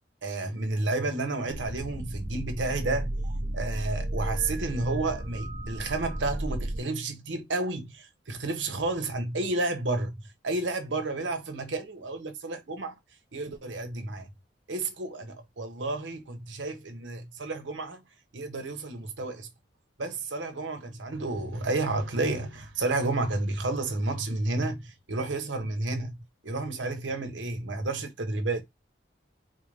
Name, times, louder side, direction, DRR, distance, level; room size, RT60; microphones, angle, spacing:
voice 1, 0.2-3.1 3.5-10.1 10.4-12.9 13.3-14.3 14.7-18.0 18.3-19.5 20.0-26.2 26.4-28.6, right 2 dB, 80° right, 1.0 m, -31 dB
sound 1, 1.5-6.8, right 1 dB, 30° right, 0.7 m, -33 dB
4.1 x 2.7 x 3.2 m
head